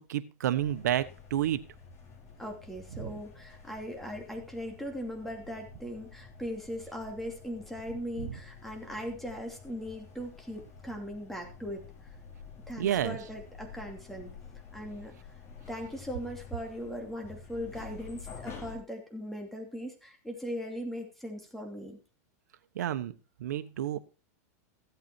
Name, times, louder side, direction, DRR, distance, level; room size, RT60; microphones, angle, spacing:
voice 1, 0.0-1.6 3.0-3.1 8.2-8.3 12.8-13.2 22.7-23.1 23.4-24.0, right 11 dB, 85° right, 12 dB, 1.2 m, -30 dB
sound 1, 0.6-18.8, left 5 dB, 30° left, 4.5 m, -49 dB
voice 2, 2.4-12.1 12.7-14.3 14.7-15.1 15.7-22.0, equal, ahead, 2 dB, 2.8 m, -39 dB
15.0 x 8.3 x 4.5 m, 0.33 s
supercardioid pair, 145°, 9 cm